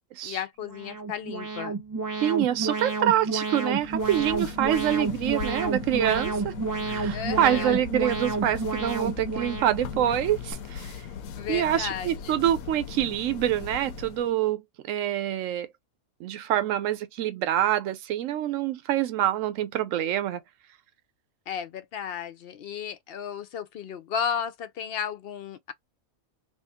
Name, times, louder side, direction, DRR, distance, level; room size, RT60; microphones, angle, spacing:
voice 1, 0.2-1.8 7.1-7.8 11.4-12.4 21.5-25.7, left 7 dB, 60° left, 0.6 m, -34 dB
Alarm, 0.6-10.5, right 4 dB, 25° right, 0.4 m, -31 dB
voice 2, 2.2-6.5 6.9-10.9 11.5-15.7 16.2-20.4, right 11 dB, 75° right, 1.0 m, -26 dB
sound 1, 3.8-14.3, left 7 dB, 90° left, 1.0 m, -39 dB
3.0 x 2.8 x 3.5 m
omnidirectional pair, 1.4 m